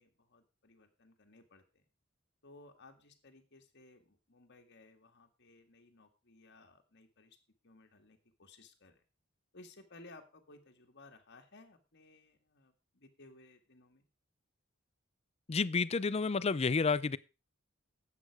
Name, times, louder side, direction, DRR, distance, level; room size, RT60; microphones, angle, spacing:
voice 1, 0.0-1.8 2.4-7.4 7.6-9.0 9.5-14.1, left 2 dB, 55° left, 1.9 m, -59 dB
voice 2, 15.5-17.2, left 4 dB, 30° left, 0.5 m, -30 dB
11.5 x 8.5 x 4.8 m
head